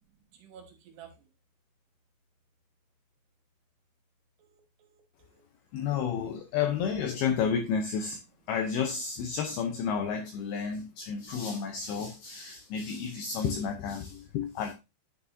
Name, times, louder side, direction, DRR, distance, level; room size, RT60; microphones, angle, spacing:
voice 1, 0.3-1.3 4.4-5.4 11.2-11.3, right 8 dB, 70° right, 3.3 m, -53 dB
voice 2, 5.7-8.2 8.5-14.7, left 6 dB, 80° left, 2.3 m, -31 dB
10.5 x 6.9 x 2.7 m
omnidirectional pair, 5.4 m